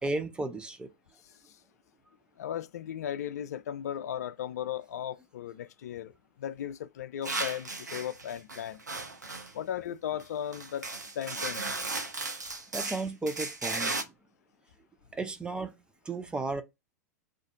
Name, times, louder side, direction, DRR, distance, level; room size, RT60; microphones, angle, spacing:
voice 1, 0.0-0.9 12.7-14.0 15.1-15.7 16.1-16.6, right 2 dB, 10° right, 0.5 m, -34 dB
voice 2, 2.4-6.1 6.4-8.8 9.5-10.9 11.2-11.8, left 10 dB, 65° left, 0.4 m, -36 dB
sound 1, 7.2-9.5 10.2-10.3 10.5-14.0, right 3 dB, 90° right, 0.5 m, -35 dB
2.5 x 2.4 x 3.9 m
figure-of-eight pair, 90°, 9 cm